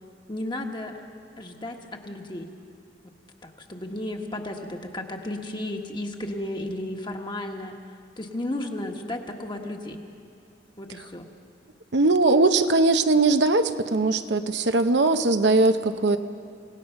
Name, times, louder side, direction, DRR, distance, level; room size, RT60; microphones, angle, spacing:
voice 1, 0.3-1.0 1.4-2.5 3.4-7.7 8.2-10.0 10.8-11.3, left 1 dB, 25° left, 3 dB, 1.5 m, -33 dB
voice 2, 11.9-16.2, right 3 dB, 70° right, 9 dB, 0.8 m, -20 dB
27.5 x 17.5 x 5.8 m, 2.6 s
head